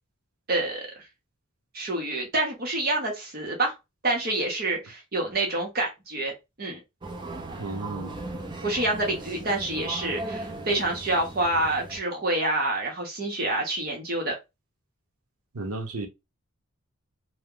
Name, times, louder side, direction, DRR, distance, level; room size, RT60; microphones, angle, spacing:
voice 1, 0.5-0.9 1.7-3.7 4.0-6.8 8.6-14.3, right 2 dB, 40° right, 0.9 m, -27 dB
sound 1, 7.0-12.0, right 2 dB, 20° right, 0.5 m, -37 dB
voice 2, 7.6-8.1 15.5-16.1, right 2 dB, 85° right, 0.8 m, -33 dB
2.8 x 2.2 x 3.7 m
head